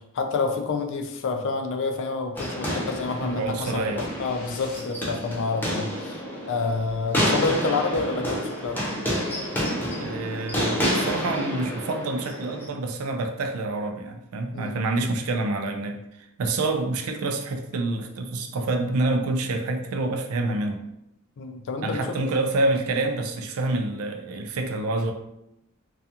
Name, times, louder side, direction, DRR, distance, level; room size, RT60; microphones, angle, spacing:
voice 1, 0.1-6.2 6.5-8.8 14.5-14.8 21.4-22.2, left 3 dB, 60° left, 5 dB, 0.4 m, -28 dB
sound 1, 2.4-12.7, equal, 10° left, 0.5 m, -29 dB
sound 2, 2.6-5.3, equal, 40° left, 0.8 m, -44 dB
voice 2, 3.2-4.0 7.5-7.6 10.0-20.8 21.8-25.1, right 2 dB, 90° right, 4 dB, 0.4 m, -27 dB
2.4 x 2.3 x 2.7 m, 0.83 s
head